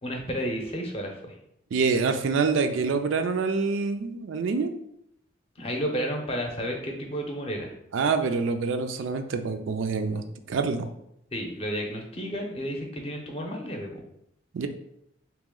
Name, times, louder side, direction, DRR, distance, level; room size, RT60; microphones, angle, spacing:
voice 1, 0.0-1.3 5.6-7.7 11.3-14.0, equal, 30° left, 2 dB, 0.6 m, -32 dB
voice 2, 1.7-4.7 7.9-10.9 14.5-14.7, right 4 dB, 75° right, 7 dB, 0.4 m, -26 dB
3.3 x 3.0 x 3.7 m, 0.76 s
head